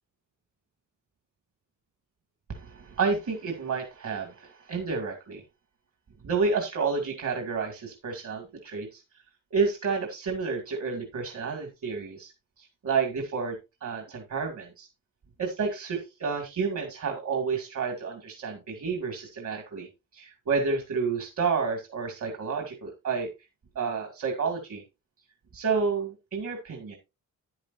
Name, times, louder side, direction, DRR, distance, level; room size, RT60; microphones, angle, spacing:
voice 1, 2.5-5.4 6.2-9.0 9.5-12.3 12.6-14.9 15.4-23.3 23.8-24.8 25.5-27.0, right 5 dB, 60° right, 3 dB, 2.5 m, -30 dB
10.5 x 10.5 x 2.7 m, 0.25 s
cardioid pair, 110°, 33 cm